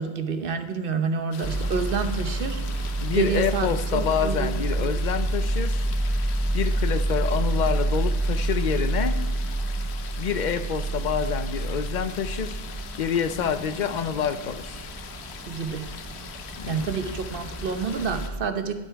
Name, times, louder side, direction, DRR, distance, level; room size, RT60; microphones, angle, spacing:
voice 1, 0.0-2.6 3.1-5.0 15.5-15.9 16.7-18.9, right 5 dB, 55° right, 8 dB, 1.0 m, -29 dB
sound 1, 1.3-18.3, left 8 dB, 75° left, 0.9 m, -43 dB
sound 2, 1.4-18.4, right 2 dB, 20° right, 0.4 m, -28 dB
voice 2, 3.0-5.9 6.5-9.2 10.1-12.6 13.0-14.9 16.6-16.9, left 7 dB, 50° left, 11 dB, 0.7 m, -27 dB
11.5 x 8.0 x 4.6 m, 1.2 s
omnidirectional pair, 1.1 m